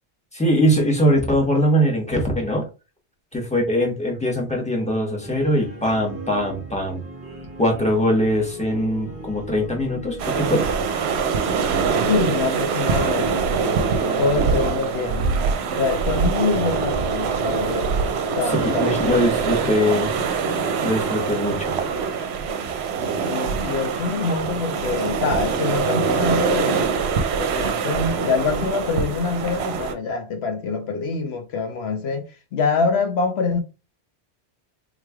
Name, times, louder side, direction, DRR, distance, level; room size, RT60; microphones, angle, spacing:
voice 1, 0.3-2.6 3.3-7.0 7.6-10.6 18.4-20.1 20.8-21.7, equal, 5° left, 1.0 m, -21 dB
sound 1, 5.2-10.5, right 1 dB, 10° right, 1.4 m, -38 dB
sound 2, 10.2-29.9, right 5 dB, 70° right, 0.8 m, -24 dB
voice 2, 12.1-13.5 14.2-15.3 15.7-17.9 18.3-19.8 23.3-26.9 27.4-33.6, left 4 dB, 70° left, 1.0 m, -25 dB
sound 3, 12.3-19.3, right 1 dB, 35° left, 0.8 m, -34 dB
3.8 x 3.1 x 2.3 m
omnidirectional pair, 1.2 m